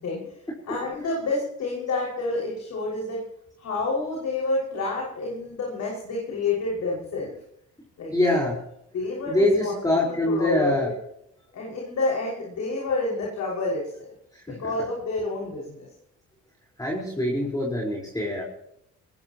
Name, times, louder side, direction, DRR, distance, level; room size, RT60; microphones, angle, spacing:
voice 1, 0.7-3.2 3.6-7.3 8.0-8.1 8.9-9.8 10.0-10.9 11.5-14.1 14.5-15.9, left 3 dB, 65° left, -3 dB, 6.3 m, -29 dB
voice 2, 8.1-8.6 9.3-10.9 14.3-14.6 16.8-18.4, left 1 dB, 10° left, -3 dB, 4.9 m, -24 dB
21.0 x 20.0 x 3.1 m, 0.75 s
cardioid pair, 90°, 30 cm